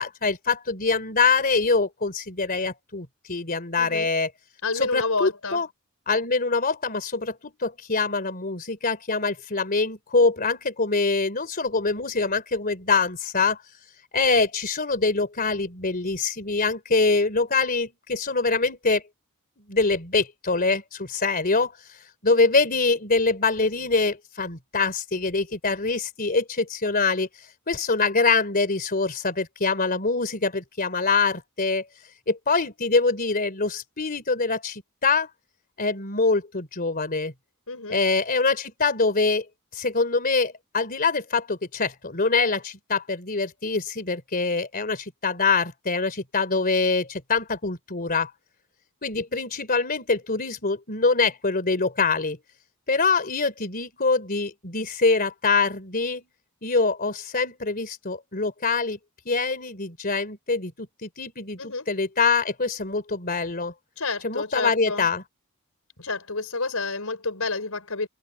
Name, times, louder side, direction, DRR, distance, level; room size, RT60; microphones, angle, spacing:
voice 1, 0.0-4.3 4.7-5.7 6.1-13.6 14.1-19.0 19.7-31.8 32.3-35.3 35.8-37.3 37.9-39.4 39.7-48.3 49.0-52.4 52.9-56.2 56.6-59.0 59.3-60.7 61.0-63.7 64.2-65.2, left 4 dB, 40° left, 3.6 m, -24 dB
voice 2, 3.8-4.1 4.6-5.6 37.7-38.0 61.6-61.9 64.0-65.1 66.0-68.1, left 3 dB, 70° left, 5.8 m, -29 dB
head